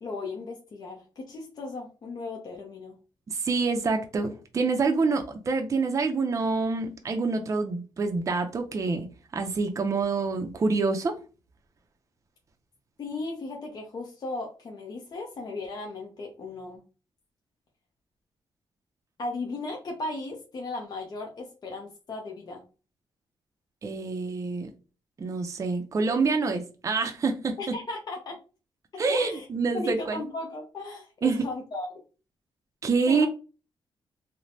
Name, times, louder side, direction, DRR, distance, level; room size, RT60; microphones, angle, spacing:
voice 1, 0.0-3.0 13.0-16.8 19.2-22.6 27.6-28.4 29.1-29.5 29.7-32.0 33.1-33.3, left 2 dB, 50° left, 0.6 m, -36 dB
voice 2, 3.3-9.1 9.3-11.2 23.8-24.7 25.2-27.8 29.0-30.2 31.2-31.4 32.8-33.3, right 4 dB, 35° right, 0.5 m, -26 dB
3.1 x 2.1 x 2.6 m
cardioid pair, 95°, 9 cm